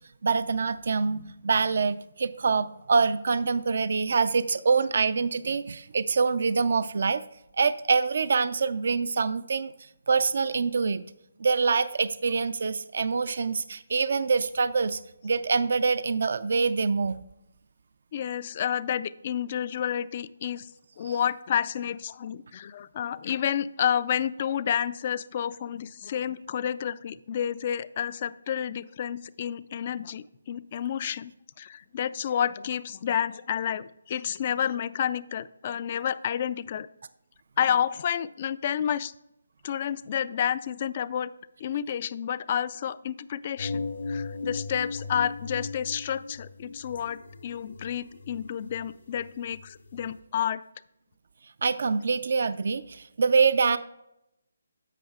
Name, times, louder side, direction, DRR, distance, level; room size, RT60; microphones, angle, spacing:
voice 1, 0.2-7.2 7.6-9.7 10.1-11.0 11.4-17.2 51.6-53.8, right 5 dB, 60° right, 14 dB, 0.4 m, -25 dB
voice 2, 18.1-20.7 21.0-31.3 31.6-36.9 37.6-39.1 39.6-41.3 41.6-50.6, left 9 dB, 40° left, 18 dB, 0.3 m, -30 dB
sound 1, 43.6-50.1, left 3 dB, 75° left, 1.8 m, -37 dB
11.0 x 7.7 x 2.3 m, 0.85 s
figure-of-eight pair, 150°, 0 cm